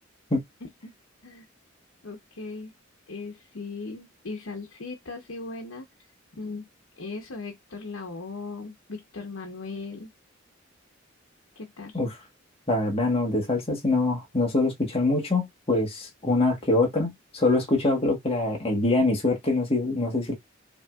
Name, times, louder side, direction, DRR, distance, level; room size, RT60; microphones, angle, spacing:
voice 1, 0.6-0.9 1.2-1.4 2.0-2.7 3.1-5.9 6.4-6.7 7.0-10.1 11.6-12.0, left 3 dB, 90° left, 0.9 m, -38 dB
voice 2, 12.7-20.3, left 2 dB, 30° left, 1.3 m, -24 dB
5.4 x 3.0 x 2.4 m
head